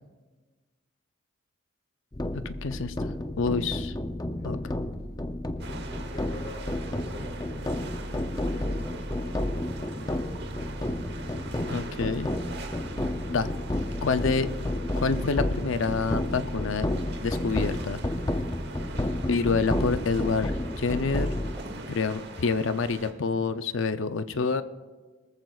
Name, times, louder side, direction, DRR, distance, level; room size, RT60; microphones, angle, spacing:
sound 1, 2.1-21.5, left 1 dB, 20° left, 0.5 m, -31 dB
voice 1, 2.3-3.9 4.4-4.6 11.7-12.3 13.3-13.5 14.0-14.5 14.9-16.9 17.2-18.0 19.3-21.4 21.9-24.6, left 4 dB, 70° left, 11 dB, 0.6 m, -27 dB
voice 2, 4.3-5.2 6.1-10.7, left 2 dB, 40° left, 0 dB, 1.7 m, -47 dB
sound 2, 5.6-23.1, right 3 dB, 55° right, 1.1 m, -43 dB
sound 3, 17.1-23.2, equal, 15° right, 3.5 m, -52 dB
22.5 x 14.0 x 2.4 m, 1.3 s
head